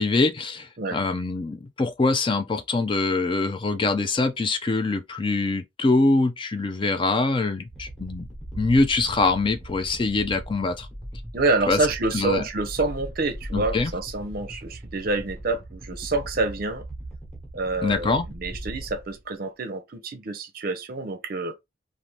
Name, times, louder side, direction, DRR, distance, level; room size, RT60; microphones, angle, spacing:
voice 1, 0.0-8.3 8.6-10.9 11.7-11.8 12.1-12.4 13.5-13.9 17.8-18.2, left 3 dB, 25° left, 0.4 m, -24 dB
sound 1, 7.7-19.2, right 1 dB, ahead, 1.1 m, -39 dB
voice 2, 11.3-16.8 17.5-21.6, right 3 dB, 50° right, 0.6 m, -27 dB
2.7 x 2.5 x 3.2 m
head